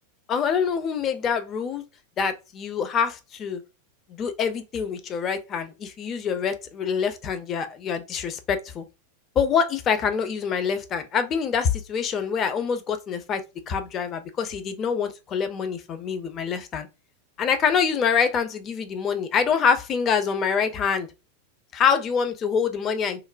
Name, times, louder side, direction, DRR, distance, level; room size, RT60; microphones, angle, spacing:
voice 1, 0.3-1.8 2.2-3.6 4.1-8.8 9.4-16.9 17.4-21.1 21.7-23.2, left 6 dB, 30° left, 0.5 m, -25 dB
3.0 x 2.1 x 2.4 m
figure-of-eight pair, 90°, 0 cm